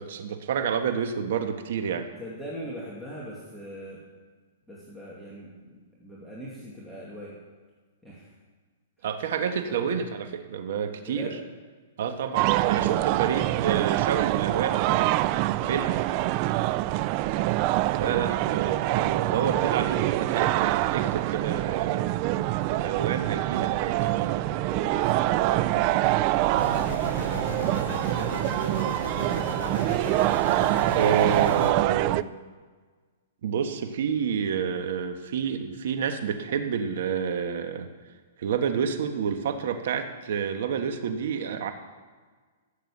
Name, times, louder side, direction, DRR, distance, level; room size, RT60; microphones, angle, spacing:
voice 1, 0.0-2.1 9.0-11.3 12.0-15.1 15.6-15.9 17.9-24.4 30.9-32.2 33.4-37.9 38.4-41.7, right 7 dB, 65° right, 6 dB, 1.5 m, -29 dB
voice 2, 2.2-4.0 4.7-7.3 8.0-8.3 9.7-9.8 11.0-11.4 15.5-17.1 24.3-26.7 27.2-29.5, equal, ahead, -8 dB, 2.5 m, -42 dB
sound 1, 12.3-32.2, right 16 dB, 35° right, 0.3 m, -25 dB
sound 2, 26.6-31.7, left 7 dB, 65° left, 0.8 m, -36 dB
13.5 x 7.3 x 7.4 m, 1.4 s
hypercardioid pair, 155°, 0 cm